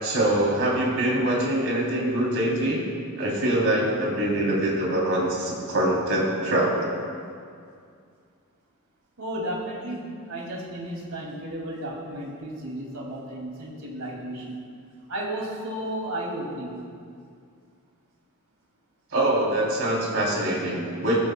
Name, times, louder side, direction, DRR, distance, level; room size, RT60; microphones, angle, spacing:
voice 1, 0.0-2.8 3.2-6.8 19.1-21.2, right 1 dB, 65° right, -4 dB, 3.3 m, -24 dB
voice 2, 9.2-14.6 15.1-16.8, right 1 dB, 85° right, -2 dB, 2.6 m, -33 dB
17.0 x 15.0 x 2.3 m, 2.3 s
head